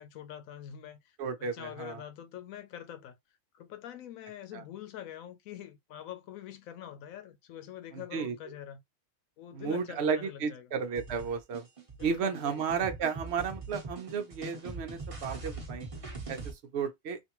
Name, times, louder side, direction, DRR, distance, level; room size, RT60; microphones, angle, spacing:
voice 1, 0.0-3.1 3.5-8.8 9.4-10.7 12.0-12.7, left 11 dB, 80° left, 1.0 m, -45 dB
voice 2, 1.2-2.0 4.5-4.6 7.9-8.3 9.5-11.7 12.0-15.9 16.3-17.2, right 6 dB, 60° right, 0.8 m, -33 dB
sound 1, 11.0-16.5, right 3 dB, 30° right, 0.9 m, -42 dB
3.3 x 2.5 x 2.9 m
omnidirectional pair, 1.4 m